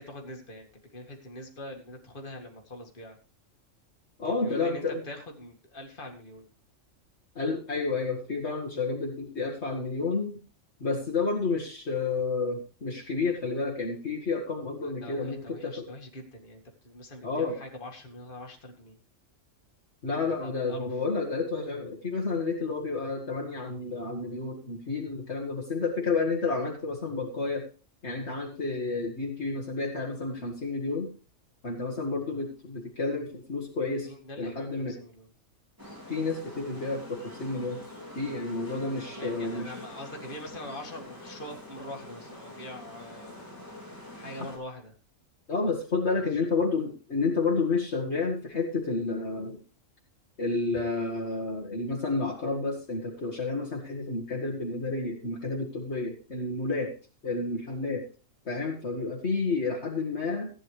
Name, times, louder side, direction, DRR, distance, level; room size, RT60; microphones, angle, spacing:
voice 1, 0.0-3.2 4.3-6.5 14.8-19.0 20.2-20.8 34.0-35.3 39.1-43.5 44.1-44.9 46.2-46.3, left 1 dB, 40° left, 1 dB, 2.3 m, -43 dB
voice 2, 4.2-5.0 7.4-10.4 10.8-15.9 17.2-17.5 20.0-27.7 28.0-31.1 31.6-34.1 34.4-35.0 36.1-37.8 38.2-39.7 45.5-49.6 50.4-56.9 57.2-58.1 58.5-60.5, left 3 dB, 55° left, -1 dB, 2.1 m, -30 dB
sound 1, 35.8-44.6, left 1 dB, 15° right, 3.5 m, -45 dB
15.0 x 9.8 x 3.2 m, 0.36 s
omnidirectional pair, 1.4 m